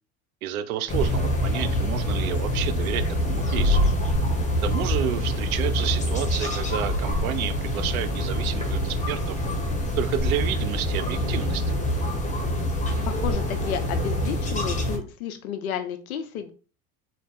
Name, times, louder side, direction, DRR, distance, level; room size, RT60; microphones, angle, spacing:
voice 1, 0.4-3.8 4.6-9.4 10.0-11.8, right 11 dB, 80° right, 12 dB, 0.6 m, -30 dB
sound 1, 0.9-15.0, equal, 15° left, 1.3 m, -25 dB
voice 2, 13.0-16.5, left 8 dB, 85° left, 8 dB, 0.9 m, -32 dB
4.1 x 2.3 x 3.6 m, 0.36 s
hypercardioid pair, 85°, 42 cm